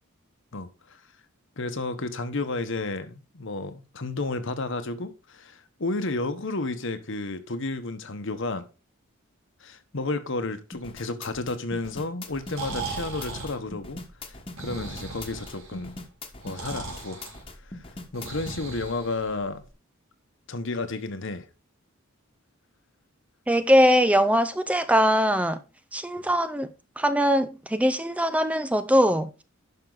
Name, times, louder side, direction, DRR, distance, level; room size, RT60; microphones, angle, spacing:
voice 1, 1.6-8.7 9.6-14.0 14.3-15.9 16.4-17.2 17.7-17.8 18.1-19.6 20.5-21.5, left 2 dB, 60° left, 1.1 m, -32 dB
sound 1, 10.7-18.6, left 2 dB, 25° left, 1.3 m, -41 dB
Breathing, 12.3-19.7, right 4 dB, 75° right, 3.3 m, -39 dB
voice 2, 23.5-25.6 25.9-26.7 27.0-29.3, equal, 5° right, 0.5 m, -21 dB
11.0 x 5.8 x 3.9 m
head